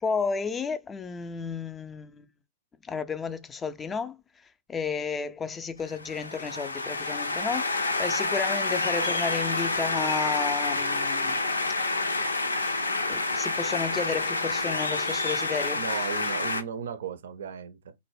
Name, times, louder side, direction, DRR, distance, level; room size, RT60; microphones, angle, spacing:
voice 1, 0.0-2.3 2.8-4.2 4.7-11.4 13.1-15.8, left 5 dB, 15° left, 0.3 m, -32 dB
sound 1, 5.9-16.6, left 2 dB, 80° left, 0.4 m, -28 dB
voice 2, 15.7-17.9, right 7 dB, 60° right, 0.4 m, -36 dB
3.2 x 2.0 x 3.2 m
figure-of-eight pair, 105°, 0 cm